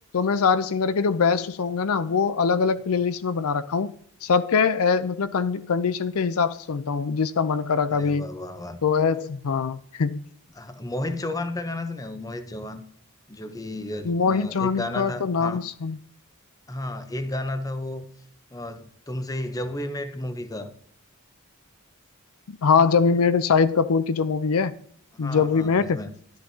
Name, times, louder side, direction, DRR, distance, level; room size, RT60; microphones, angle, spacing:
voice 1, 0.1-3.9 4.2-8.3 8.8-10.2 14.0-16.0 22.5-24.7 25.2-26.0, left 5 dB, 75° left, 0.5 m, -23 dB
voice 2, 7.9-8.8 10.5-12.8 13.3-15.6 16.7-18.1 18.5-20.7 25.1-26.1, left 1 dB, 15° left, 0.7 m, -33 dB
11.5 x 10.5 x 2.8 m
head